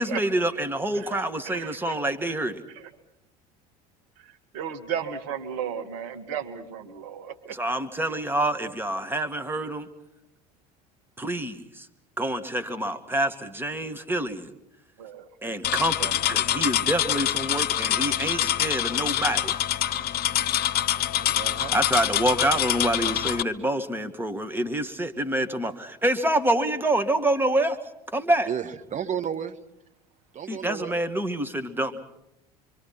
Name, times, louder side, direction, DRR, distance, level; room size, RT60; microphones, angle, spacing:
voice 1, 0.0-2.6 7.5-9.9 11.2-11.9 12.2-14.5 15.4-19.5 21.7-27.8 28.1-28.5 30.5-32.0, right 1 dB, 10° right, 9 dB, 1.9 m, -27 dB
voice 2, 1.0-2.0 2.3-2.4 2.8-2.9 4.2-7.6 15.0-15.3 16.0-16.6 21.2-21.3, right 8 dB, 65° right, 9 dB, 1.9 m, -35 dB
sound 1, 15.6-23.4, left 11 dB, 50° left, 1.1 m, -25 dB
voice 3, 21.1-21.8 28.5-29.6 30.3-31.0, right 9 dB, 40° right, 11 dB, 1.9 m, -33 dB
26.0 x 25.0 x 6.0 m, 0.82 s
hypercardioid pair, 70°, 20 cm